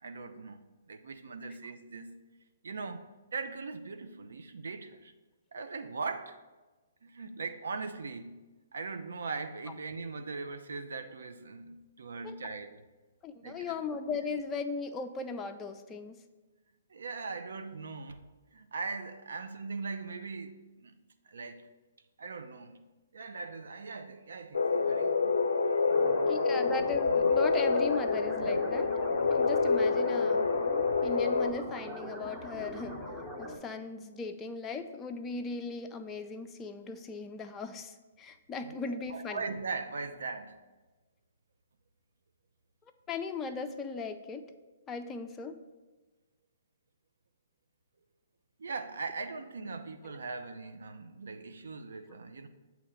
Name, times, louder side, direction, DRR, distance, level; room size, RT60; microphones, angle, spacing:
voice 1, 0.0-2.2 2.6-5.1 5.5-6.4 7.0-8.4 8.7-12.8 13.4-13.8 16.9-18.2 18.5-21.0 21.3-21.7 22.2-22.8 23.1-25.6 38.6-40.6 48.6-52.5, right 4 dB, 70° right, 8 dB, 0.5 m, -40 dB
voice 2, 13.2-16.2 26.3-28.9 29.3-30.5 31.0-33.0 33.4-39.5 43.1-44.4 44.9-45.6, left 4 dB, 15° left, 6 dB, 0.4 m, -38 dB
sound 1, 24.5-31.5, left 4 dB, 75° left, 0.4 m, -27 dB
sound 2, 25.9-33.6, left 1 dB, 5° right, 0.9 m, -41 dB
7.3 x 2.9 x 5.5 m, 1.2 s
figure-of-eight pair, 125°, 0 cm